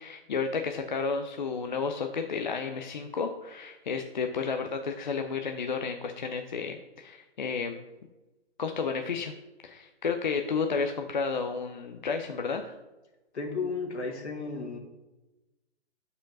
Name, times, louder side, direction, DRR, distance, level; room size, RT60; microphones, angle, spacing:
voice 1, 0.0-7.8 8.6-9.3 9.6-12.7, left 5 dB, 45° left, 5 dB, 0.5 m, -32 dB
voice 2, 13.3-14.8, left 4 dB, 80° left, 1 dB, 2.1 m, -33 dB
5.1 x 4.6 x 5.8 m, 1.1 s
hypercardioid pair, 165°, 33 cm